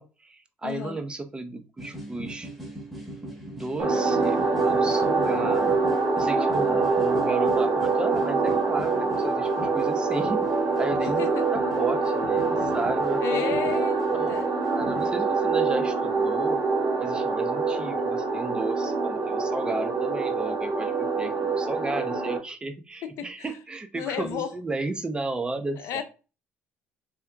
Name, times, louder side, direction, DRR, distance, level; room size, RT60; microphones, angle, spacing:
voice 1, 0.0-2.5 3.5-5.7 6.2-10.4 10.8-11.2 11.5-13.4 13.9-14.4 14.6-16.6 17.0-26.0, right 2 dB, 20° right, 0.5 m, -34 dB
voice 2, 0.6-1.0 11.0-11.5 13.2-14.0 14.3-14.5 23.0-23.5 24.0-24.5 25.8-26.0, left 9 dB, 75° left, 0.5 m, -32 dB
sound 1, 1.8-15.2, equal, 5° right, 1.0 m, -41 dB
sound 2, 3.8-22.4, right 4 dB, 80° right, 1.0 m, -25 dB
3.5 x 2.8 x 2.2 m
cardioid pair, 100°, 5 cm